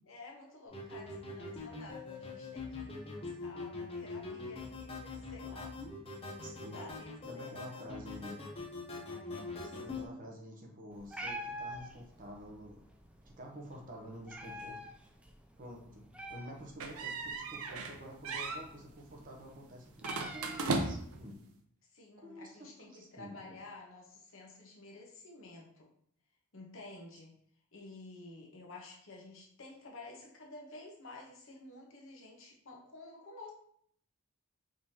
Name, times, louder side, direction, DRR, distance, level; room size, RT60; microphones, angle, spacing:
voice 1, 0.1-5.7 6.6-8.0 8.9-9.7 21.9-25.9 26.5-27.3 27.7-33.5, left 2 dB, 65° left, -1 dB, 1.1 m, -52 dB
sound 1, 0.7-10.1, left 3 dB, 25° left, 0.7 m, -43 dB
voice 2, 6.4-6.9 7.3-8.4 9.7-12.8 13.2-14.8 15.6-16.0 16.3-20.0 20.3-21.4 22.2-23.6, equal, 40° right, 1 dB, 0.8 m, -49 dB
Meow, 10.9-21.3, equal, 5° right, 0.3 m, -48 dB
sound 2, 16.8-18.0 18.2-18.6 20.0-21.2, right 3 dB, 80° right, 0.6 m, -36 dB
4.9 x 3.5 x 2.8 m, 0.65 s
head